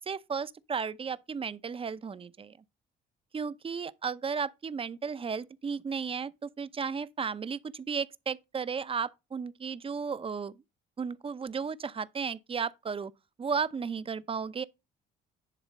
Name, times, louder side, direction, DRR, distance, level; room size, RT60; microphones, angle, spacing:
voice 1, 0.1-2.5 3.3-10.5 11.0-13.1 13.4-14.6, right 6 dB, 30° right, 0.6 m, -34 dB
11.0 x 3.6 x 5.3 m
cardioid pair, 100°, 19 cm